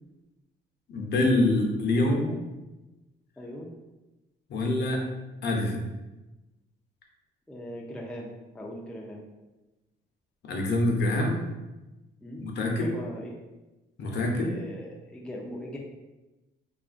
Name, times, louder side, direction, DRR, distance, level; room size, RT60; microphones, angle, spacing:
voice 1, 0.9-2.3 4.5-5.0 5.4-5.8 10.4-11.4 12.4-12.9 14.0-14.5, left 1 dB, 60° left, 0 dB, 0.6 m, -25 dB
voice 2, 3.4-3.7 7.5-9.3 12.2-12.4 12.7-13.4 14.4-15.8, equal, 5° left, -1 dB, 0.4 m, -40 dB
2.6 x 2.4 x 2.4 m, 1.1 s
cardioid pair, 90°, 20 cm